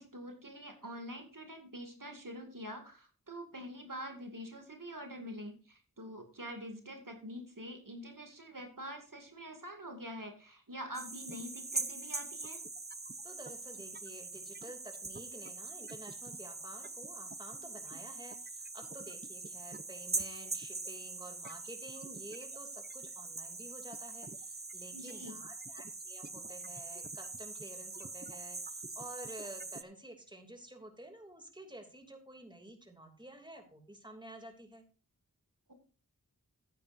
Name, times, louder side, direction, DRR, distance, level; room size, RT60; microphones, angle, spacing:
voice 1, 0.0-12.6 24.9-25.4, equal, 65° right, 4 dB, 2.4 m, -45 dB
sound 1, 10.9-29.8, right 3 dB, 30° right, 0.7 m, -43 dB
voice 2, 13.2-34.8, right 1 dB, 15° right, 4 dB, 2.9 m, -51 dB
15.0 x 9.4 x 2.7 m, 0.37 s
wide cardioid pair, 40°, 35 cm